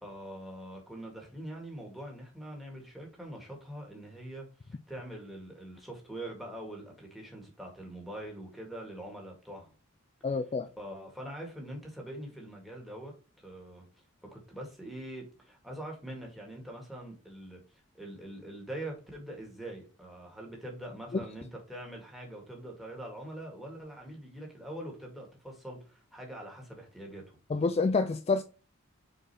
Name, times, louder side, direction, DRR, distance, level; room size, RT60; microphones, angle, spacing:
voice 1, 0.0-9.7 10.8-13.1 13.4-13.9 14.3-17.6 17.9-27.4, right 1 dB, ahead, 2.0 m, -43 dB
voice 2, 10.2-10.7 21.1-21.2 27.5-28.4, left 4 dB, 30° left, 0.3 m, -28 dB
5.1 x 4.5 x 4.2 m
head